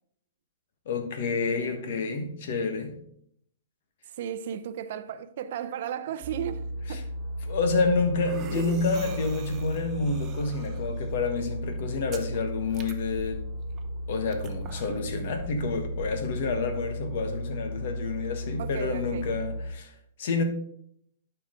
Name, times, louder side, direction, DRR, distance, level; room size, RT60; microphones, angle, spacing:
voice 1, 0.8-3.0 6.9-7.0 7.4-13.4 14.1-20.4, left 4 dB, 60° left, 1.3 m, -29 dB
voice 2, 4.1-7.0 18.6-19.3, right 9 dB, 60° right, 0.6 m, -35 dB
sound 1, 6.2-19.7, equal, 45° right, 1.1 m, -35 dB
sound 2, 7.1-16.6, right 5 dB, 25° right, 0.7 m, -44 dB
11.5 x 4.8 x 3.8 m
hypercardioid pair, 145°, 0 cm